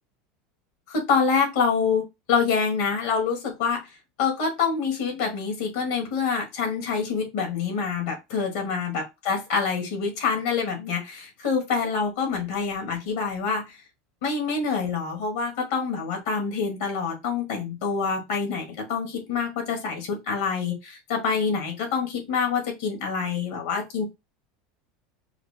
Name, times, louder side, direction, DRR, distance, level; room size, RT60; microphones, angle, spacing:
voice 1, 0.9-2.0 2.3-3.8 4.2-13.6 14.2-24.0, left 5 dB, 75° left, 3 dB, 1.9 m, -26 dB
4.8 x 2.1 x 3.4 m, 0.22 s
supercardioid pair, 100°, 0 cm